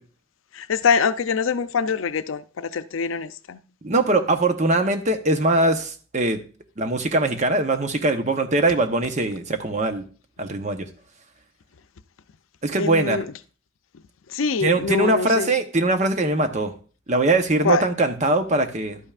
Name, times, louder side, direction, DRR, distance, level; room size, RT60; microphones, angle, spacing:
voice 1, 0.5-3.6 12.8-13.2 14.3-15.5 17.6-17.8, left 5 dB, 85° left, 0.5 m, -24 dB
voice 2, 3.8-6.4 6.8-10.1 10.4-10.9 12.6-13.2 14.6-16.7 17.1-19.0, right 2 dB, 35° right, 0.9 m, -21 dB
11.5 x 8.8 x 2.4 m
head